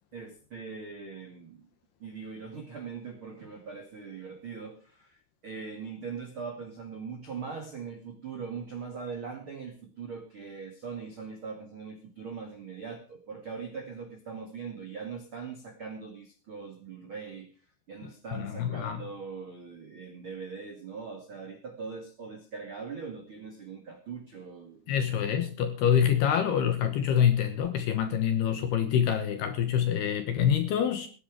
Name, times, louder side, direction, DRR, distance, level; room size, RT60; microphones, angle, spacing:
voice 1, 0.1-1.7 2.0-17.5 17.9-25.4, right 5 dB, 80° right, 4 dB, 1.1 m, -41 dB
voice 2, 18.3-19.0 24.9-31.1, left 9 dB, 75° left, 8 dB, 2.5 m, -26 dB
18.0 x 10.0 x 5.0 m, 0.38 s
omnidirectional pair, 6.0 m